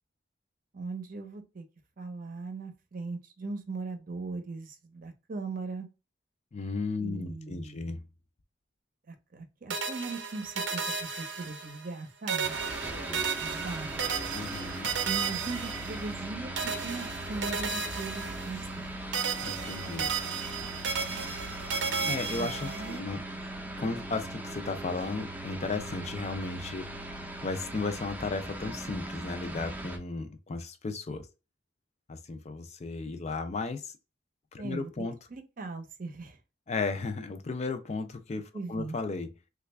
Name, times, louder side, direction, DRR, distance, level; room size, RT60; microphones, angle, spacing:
voice 1, 0.7-1.7 2.0-5.9 7.0-7.9 9.1-12.6 13.4-14.3 15.0-18.9 21.0-21.3 22.4-23.1 34.6-36.4 38.5-39.0, right 3 dB, 50° right, 0.7 m, -39 dB
voice 2, 6.5-8.0 12.9-13.3 14.3-14.9 19.4-20.1 22.0-23.2 23.8-26.9 27.4-31.2 32.3-33.9 34.5-35.1 36.7-39.3, left 3 dB, 40° left, 0.4 m, -35 dB
sound 1, 9.7-12.0 12.3-16.3 16.6-18.9 19.1-23.0, right 5 dB, 90° right, 0.6 m, -34 dB
sound 2, 12.4-30.0, right 1 dB, 10° right, 0.6 m, -39 dB
3.2 x 2.3 x 3.2 m
head